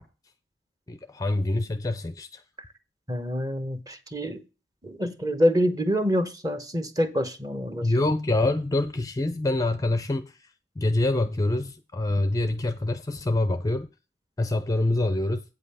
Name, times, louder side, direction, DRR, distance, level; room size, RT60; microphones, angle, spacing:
voice 1, 0.9-2.4 7.8-10.5 10.8-13.9 14.4-15.4, left 2 dB, 20° left, 0.5 m, -25 dB
voice 2, 3.1-4.4 4.8-7.9, equal, 20° right, 1.1 m, -26 dB
8.7 x 5.4 x 5.6 m
head